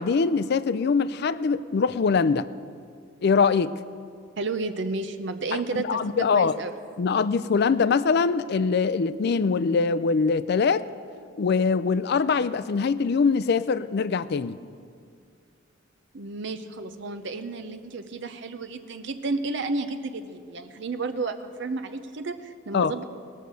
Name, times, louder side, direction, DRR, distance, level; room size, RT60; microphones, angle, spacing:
voice 1, 0.0-2.5 3.2-3.7 5.5-5.6 5.9-6.6 7.0-10.8 11.4-14.6 22.7-22.9, left 5 dB, 55° left, 15 dB, 0.4 m, -23 dB
voice 2, 4.4-6.7 16.1-23.0, right 3 dB, 60° right, 9 dB, 0.6 m, -32 dB
19.0 x 6.4 x 6.8 m, 2.2 s
head